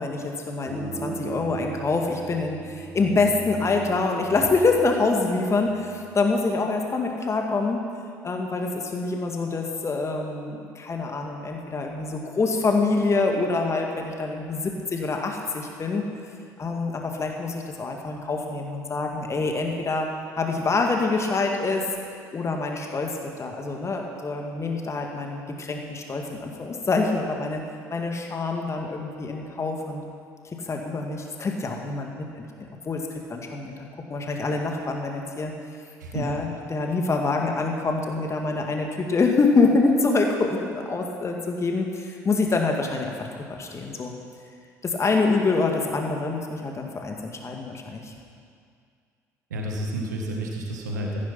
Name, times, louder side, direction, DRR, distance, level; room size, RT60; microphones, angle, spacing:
voice 1, 0.0-7.8 8.2-16.0 16.6-20.1 20.3-21.8 22.3-27.6 27.9-30.0 30.5-35.5 36.1-43.1 43.5-44.1 44.8-48.1, left 3 dB, 30° left, 2 dB, 1.9 m, -26 dB
zen gong, 0.7-6.1, right 4 dB, 35° right, 3.1 m, -38 dB
voice 2, 49.5-51.2, right 1 dB, 80° right, 0 dB, 1.6 m, -30 dB
14.5 x 11.0 x 5.9 m, 2.2 s
figure-of-eight pair, 55°, 9 cm